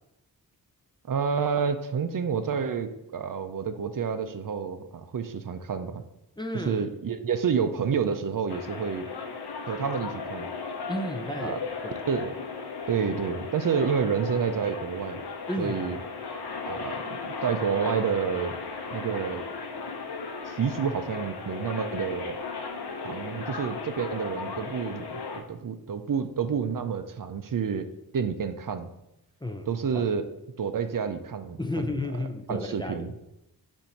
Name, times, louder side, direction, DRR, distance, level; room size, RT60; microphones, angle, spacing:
voice 1, 1.1-6.0 6.6-9.1 9.7-10.5 11.4-11.6 12.1-12.3 12.9-15.2 15.6-16.0 16.7-18.6 18.9-19.4 20.5-22.4 23.0-27.9 28.1-28.9 29.7-30.2 30.6-31.9 32.5-33.1, right 6 dB, 55° right, 9 dB, 0.5 m, -29 dB
voice 2, 6.4-6.9 10.9-11.6 11.8-12.0 15.5-15.8 29.4-29.7 29.9-30.0 31.6-33.1, left 1 dB, 10° left, 5 dB, 0.5 m, -32 dB
sound 1, 8.5-25.4, left 4 dB, 80° left, 0.8 m, -36 dB
7.1 x 2.7 x 5.8 m, 0.88 s
wide cardioid pair, 115°, 39 cm